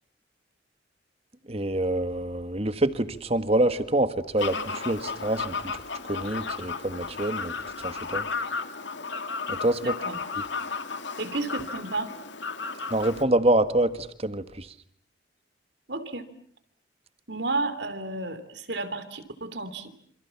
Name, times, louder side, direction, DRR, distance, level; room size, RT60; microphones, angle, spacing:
voice 1, 1.5-5.8 6.1-7.5 7.8-8.3 9.5-9.9 12.9-14.7, right 1 dB, 35° right, 11 dB, 1.6 m, -26 dB
Fowl, 4.4-13.2, left 4 dB, 75° left, 2.3 m, -34 dB
voice 2, 9.8-10.2 11.2-12.1 15.9-16.3 17.3-20.0, right 3 dB, 65° right, 11 dB, 3.1 m, -32 dB
28.0 x 27.5 x 7.1 m, 0.63 s
head